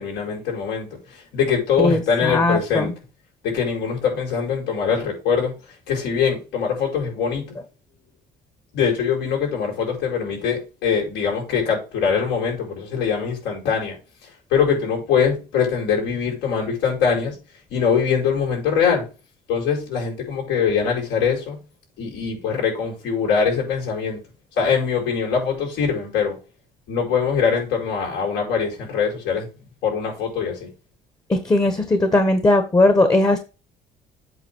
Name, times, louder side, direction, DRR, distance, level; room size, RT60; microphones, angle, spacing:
voice 1, 0.0-2.9 3.4-5.5 5.9-7.6 8.7-14.0 14.2-17.4 17.7-19.0 19.5-21.6 22.0-24.2 24.6-26.4 26.9-29.5 29.8-30.7, left 6 dB, 85° left, 5.8 m, -23 dB
voice 2, 1.8-2.9 31.3-33.4, left 2 dB, 20° left, 1.2 m, -18 dB
8.1 x 4.1 x 6.2 m
cardioid pair, 110°, 17 cm